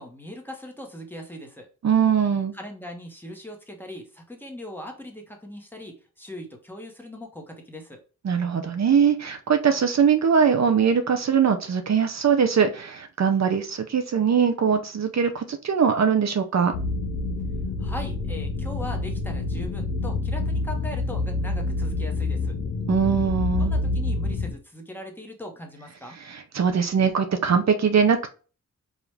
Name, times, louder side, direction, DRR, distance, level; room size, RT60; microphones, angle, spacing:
voice 1, 0.0-1.7 2.5-8.0 17.8-22.6 23.6-26.2, left 1 dB, 5° left, 2 dB, 1.1 m, -39 dB
voice 2, 1.8-2.5 8.2-16.7 22.9-23.7 26.3-28.3, right 7 dB, 60° right, 7 dB, 0.6 m, -21 dB
sound 1, 16.7-24.5, left 2 dB, 90° left, 1.0 m, -27 dB
4.9 x 2.5 x 3.3 m, 0.36 s
wide cardioid pair, 85°, 31 cm